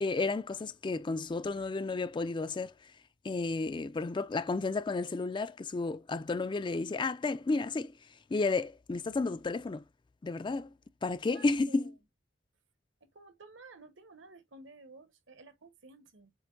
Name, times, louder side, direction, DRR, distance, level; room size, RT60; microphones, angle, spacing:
voice 1, 0.0-2.7 3.2-7.9 8.3-9.8 10.2-10.7 11.0-11.9, left 3 dB, 25° left, 0.3 m, -32 dB
voice 2, 11.1-11.9 13.0-16.3, right 3 dB, 70° right, 1.2 m, -54 dB
7.6 x 2.7 x 2.6 m
head